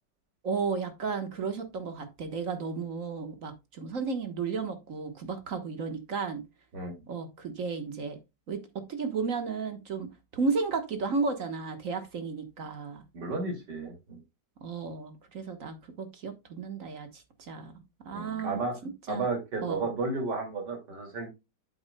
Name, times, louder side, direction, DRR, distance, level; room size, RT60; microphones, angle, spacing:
voice 1, 0.4-6.4 7.1-8.2 8.5-8.6 8.9-13.0 14.6-17.7 18.0-19.3 19.6-19.8, right 4 dB, 50° right, 1.6 m, -33 dB
voice 2, 13.1-14.2 18.1-18.8 19.1-21.3, right 3 dB, 75° right, 3.1 m, -33 dB
8.7 x 7.8 x 2.2 m
omnidirectional pair, 1.9 m